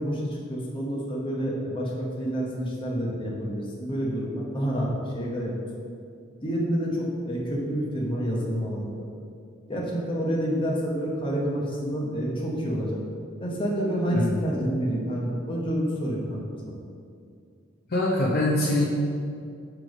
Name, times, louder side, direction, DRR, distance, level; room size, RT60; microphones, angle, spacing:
voice 1, 0.0-5.5 6.4-9.1 9.7-13.0 13.4-16.4 16.7-16.8, equal, 25° left, -4 dB, 1.0 m, -28 dB
voice 2, 17.9-18.8, left 1 dB, 50° left, -4 dB, 0.7 m, -23 dB
6.1 x 3.4 x 5.0 m, 2.4 s
head